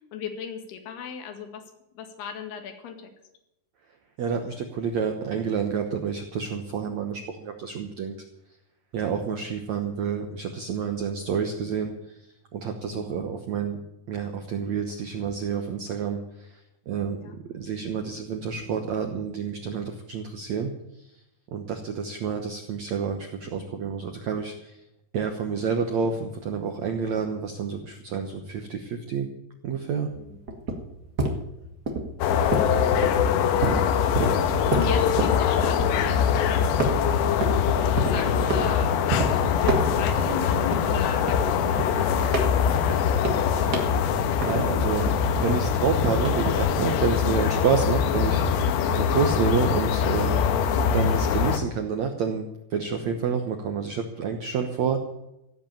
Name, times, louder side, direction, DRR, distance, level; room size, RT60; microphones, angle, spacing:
voice 1, 0.1-1.6 1.9-3.1 12.8-13.1 17.2-17.3 30.2-30.4 32.4-32.5 33.9-34.3 34.7-37.2 37.8-39.3 39.6-43.2, left 7 dB, 70° left, 5 dB, 3.9 m, -36 dB
voice 2, 4.2-8.1 8.9-12.2 12.5-13.8 14.1-16.5 16.9-17.2 17.5-20.7 21.0-21.1 21.5-24.8 25.1-29.3 29.6-30.1 44.4-45.1 45.3-50.4 50.9-55.0, right 6 dB, 75° right, 5 dB, 1.6 m, -29 dB
sound 1, 30.1-36.4 36.8-37.6 38.0-38.7 39.1-39.3 39.6-40.4 40.7-44.8 45.1-46.6, right 2 dB, 40° right, 1.4 m, -28 dB
sound 2, 32.2-51.6, left 7 dB, 90° left, 3.4 m, -23 dB
16.0 x 8.2 x 8.8 m, 0.88 s
omnidirectional pair, 4.9 m